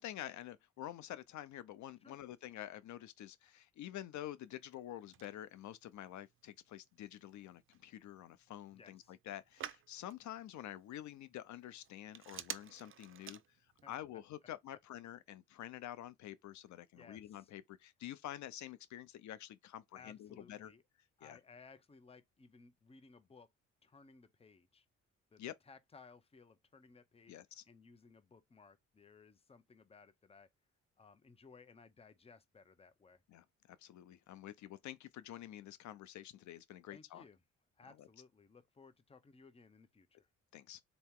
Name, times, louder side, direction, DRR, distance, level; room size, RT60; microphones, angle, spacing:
voice 1, 0.0-13.6 13.9-20.7 21.2-21.4 25.4-25.5 27.3-27.6 33.3-37.2 38.0-38.1 40.5-40.8, left 12 dB, 70° left, 0.6 m, -48 dB
Telephone, 4.4-14.0, right 9 dB, 45° right, 0.6 m, -53 dB
voice 2, 8.7-9.2 13.8-14.2 16.9-17.5 19.9-20.8 21.2-23.5 23.8-24.9 25.3-27.4 27.6-30.5 31.0-33.2 36.9-37.4 37.8-40.3, left 4 dB, 20° left, 0.7 m, -60 dB
4.1 x 2.9 x 3.6 m
cardioid pair, 90°, 30 cm